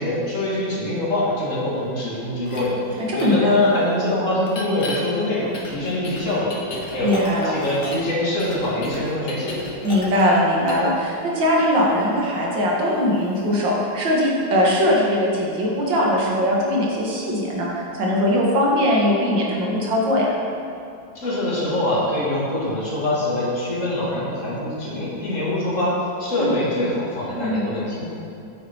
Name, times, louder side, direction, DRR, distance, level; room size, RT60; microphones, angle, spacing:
voice 1, 0.0-6.5 6.9-9.6 21.1-28.0, left 1 dB, 40° left, -6 dB, 2.5 m, -24 dB
sound 1, 2.5-2.6 3.2-3.3 4.5-5.0 5.5-8.1 8.4-10.4 10.7-10.9, left 2 dB, 55° left, 1.8 m, -34 dB
voice 2, 3.1-3.5 7.0-7.5 9.8-20.3 26.4-26.5 27.3-27.6, equal, 70° right, -4 dB, 2.4 m, -20 dB
9.4 x 7.2 x 4.7 m, 2.7 s
omnidirectional pair, 2.1 m